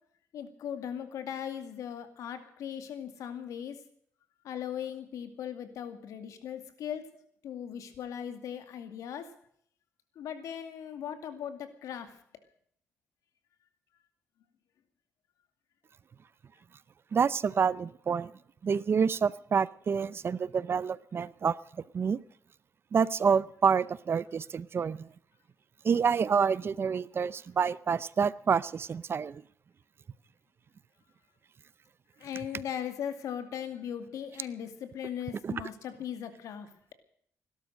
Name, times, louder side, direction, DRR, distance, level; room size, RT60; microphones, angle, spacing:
voice 1, 0.3-3.8 4.4-7.1 7.4-9.3 10.2-12.2 32.2-36.7, left 9 dB, 85° left, 9 dB, 2.4 m, -38 dB
voice 2, 17.1-18.3 18.6-21.5 21.9-22.2 22.9-25.1 25.8-29.4 35.4-35.5, right 6 dB, 45° right, 19 dB, 0.6 m, -28 dB
18.0 x 12.0 x 6.4 m, 0.64 s
cardioid pair, 95°, 5 cm